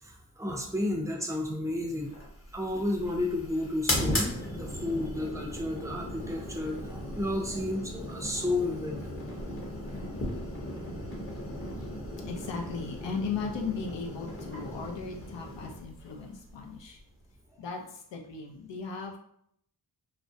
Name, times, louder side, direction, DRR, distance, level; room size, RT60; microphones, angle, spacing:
voice 1, 0.0-2.1 2.5-9.1, left 1 dB, 5° right, 1 dB, 0.5 m, -32 dB
sound 1, 2.0-17.3, left 1 dB, 30° left, 0.8 m, -37 dB
voice 2, 9.9-10.2 11.8-11.9 12.2-17.0 17.6-19.2, left 5 dB, 80° left, 1 dB, 0.5 m, -37 dB
2.4 x 2.0 x 2.5 m, 0.69 s
cardioid pair, 55°, 44 cm